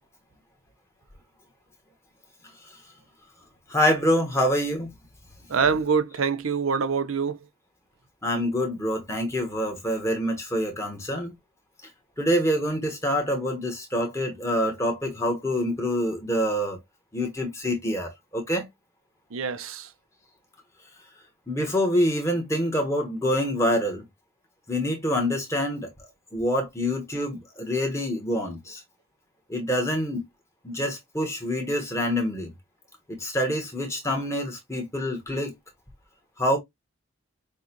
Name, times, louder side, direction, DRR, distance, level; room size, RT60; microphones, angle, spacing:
voice 1, 3.7-4.9 8.2-11.3 12.2-16.8 17.1-18.7 21.5-24.0 24.7-25.9 26.3-28.8 29.5-30.2 30.6-32.5 33.1-35.5 36.4-36.6, equal, 15° left, 1.2 m, -26 dB
voice 2, 5.5-7.4 19.3-19.9 34.0-34.1, right 6 dB, 80° right, 0.6 m, -25 dB
6.2 x 2.4 x 2.9 m
head